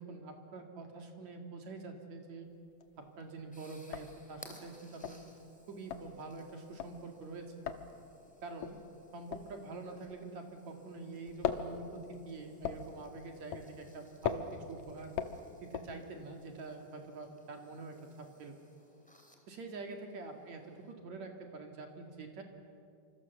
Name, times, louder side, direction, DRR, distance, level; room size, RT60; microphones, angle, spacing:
voice 1, 0.0-2.5 3.0-5.3 5.7-7.5 8.4-8.8 9.1-15.1 15.6-18.6 19.5-22.4, right 3 dB, 50° right, 4 dB, 2.8 m, -46 dB
sound 1, 2.5-3.1 3.4-3.5 3.8-10.8 11.1-16.4, left 8 dB, 80° left, 1.6 m, -40 dB
sound 2, 2.9-20.9, left 1 dB, ahead, 2.1 m, -61 dB
26.5 x 25.5 x 7.2 m, 2.4 s
omnidirectional pair, 5.0 m